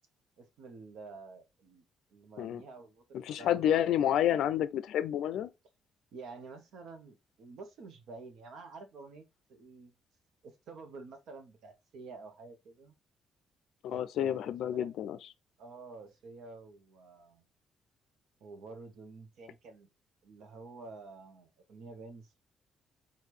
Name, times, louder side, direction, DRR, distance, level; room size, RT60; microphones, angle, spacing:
voice 1, 0.4-1.8 2.1-4.5 6.1-9.9 10.4-12.9 13.9-14.9 15.6-17.5 18.4-19.9 20.2-22.4, right 3 dB, 80° right, 1.1 m, -49 dB
voice 2, 3.1-5.5 13.8-15.2, left 10 dB, 80° left, 0.4 m, -29 dB
4.5 x 2.6 x 3.2 m
cardioid pair, 90°, 0 cm